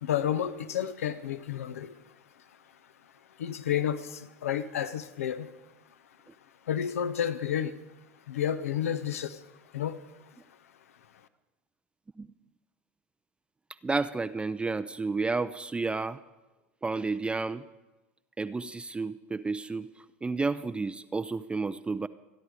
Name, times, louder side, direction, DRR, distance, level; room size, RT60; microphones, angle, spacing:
voice 1, 0.0-1.9 3.4-5.5 6.7-7.7 8.3-9.4 9.7-10.0, left 9 dB, 80° left, 0.9 m, -30 dB
voice 2, 13.8-16.2 16.8-17.6 18.4-19.9 20.2-22.1, right 3 dB, 15° right, 0.5 m, -31 dB
27.5 x 10.5 x 4.9 m
hypercardioid pair, 85°, 8 cm